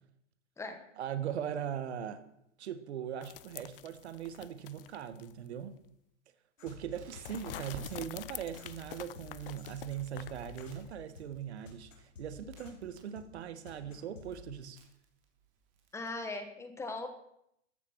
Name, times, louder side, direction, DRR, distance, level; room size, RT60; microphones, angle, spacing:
voice 1, 1.0-2.3 2.6-5.8 6.6-14.8, right 9 dB, 60° right, 11 dB, 1.6 m, -40 dB
sound 1, 3.2-5.5 5.8-5.9 7.2-10.9, left 14 dB, 50° left, 0.5 m, -47 dB
sound 2, 6.6-14.3, left 5 dB, 85° left, 5.0 m, -51 dB
Crackle, 6.9-16.1, right 4 dB, 30° right, 3.4 m, -56 dB
voice 2, 15.9-17.1, left 2 dB, 5° left, 7 dB, 1.3 m, -39 dB
14.0 x 9.8 x 6.4 m, 0.78 s
hypercardioid pair, 150°, 37 cm